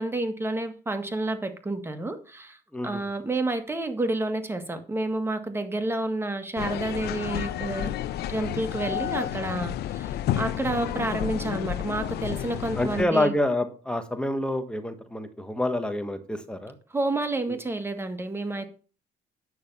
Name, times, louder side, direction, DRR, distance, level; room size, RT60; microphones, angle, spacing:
voice 1, 0.0-2.6 2.8-7.9 8.3-13.3 16.9-18.7, right 2 dB, 15° right, 1.8 m, -29 dB
sound 1, 6.6-13.0, left 12 dB, 70° left, 0.8 m, -31 dB
voice 2, 12.7-16.7 17.5-17.6, left 1 dB, 5° left, 1.5 m, -27 dB
9.7 x 6.2 x 5.6 m
cardioid pair, 110°, 17 cm